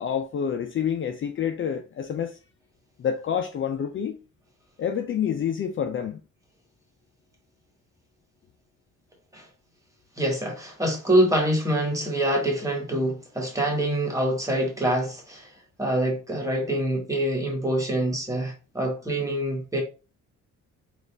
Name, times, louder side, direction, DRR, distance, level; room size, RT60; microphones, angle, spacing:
voice 1, 0.0-2.4 3.0-4.2 4.8-6.2, left 8 dB, 40° left, 0.5 m, -28 dB
voice 2, 10.2-15.5 15.8-19.8, right 1 dB, 10° right, 1.5 m, -25 dB
4.0 x 2.5 x 3.3 m
cardioid pair, 90°, 30 cm